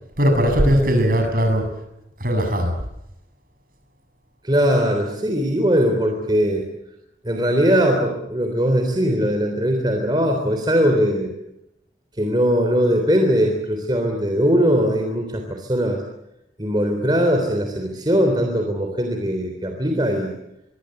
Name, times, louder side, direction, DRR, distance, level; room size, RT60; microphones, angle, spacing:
voice 1, 0.2-1.7 2.2-2.7, equal, 50° right, 5 dB, 7.4 m, -18 dB
voice 2, 4.4-6.6 7.2-11.3 12.2-16.0 16.6-20.3, equal, 25° right, 3 dB, 3.5 m, -20 dB
25.0 x 24.0 x 7.8 m, 0.85 s
head